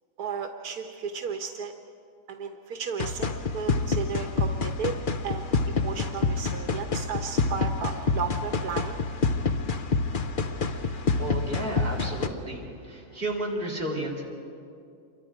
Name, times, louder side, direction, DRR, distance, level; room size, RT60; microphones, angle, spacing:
voice 1, 0.2-1.7 2.3-5.0 5.2-8.9, right 6 dB, 85° right, 5 dB, 1.5 m, -34 dB
sound 1, 3.0-12.3, left 4 dB, 40° left, 0.9 m, -27 dB
voice 2, 10.7-14.2, right 1 dB, 40° right, -1 dB, 3.9 m, -33 dB
28.0 x 24.0 x 5.0 m, 2.4 s
omnidirectional pair, 1.6 m